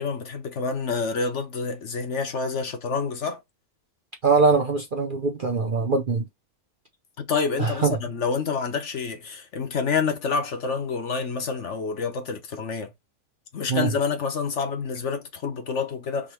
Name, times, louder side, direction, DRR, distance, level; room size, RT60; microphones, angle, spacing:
voice 1, 0.0-3.4 7.2-12.9 13.5-16.3, left 5 dB, 55° left, 1.2 m, -28 dB
voice 2, 4.2-6.2 7.6-8.0 13.7-13.9, right 4 dB, 45° right, 0.7 m, -22 dB
3.6 x 3.1 x 4.4 m
omnidirectional pair, 1.6 m